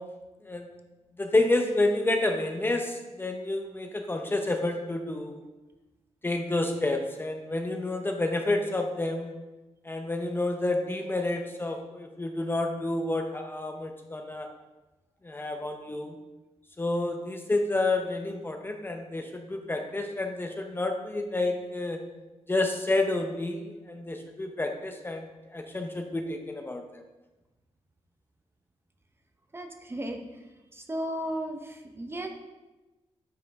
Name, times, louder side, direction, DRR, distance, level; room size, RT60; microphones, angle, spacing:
voice 1, 1.2-5.4 6.2-9.4 9.8-14.5 15.2-16.2 16.8-22.0 22.5-27.0, left 2 dB, 20° left, 4 dB, 0.6 m, -29 dB
voice 2, 29.5-30.4 30.7-32.3, right 1 dB, 20° right, 5 dB, 0.8 m, -35 dB
9.5 x 5.4 x 3.5 m, 1.1 s
wide cardioid pair, 115°, 11 cm